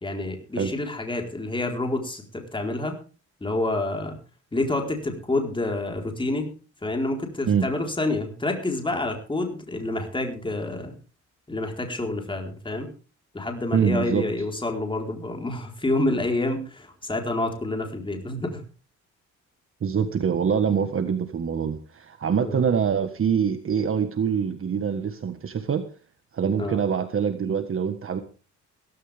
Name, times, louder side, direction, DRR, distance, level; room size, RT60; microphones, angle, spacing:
voice 1, 0.0-3.0 3.4-4.1 4.5-6.5 6.8-10.9 11.5-12.9 13.3-18.6 22.4-22.6 26.6-26.8, left 2 dB, 15° left, 2 dB, 4.4 m, -28 dB
voice 2, 13.7-14.2 19.8-25.8 26.3-28.2, right 7 dB, 45° right, 9 dB, 1.5 m, -24 dB
17.0 x 15.5 x 3.6 m, 0.36 s
cardioid pair, 90°, 30 cm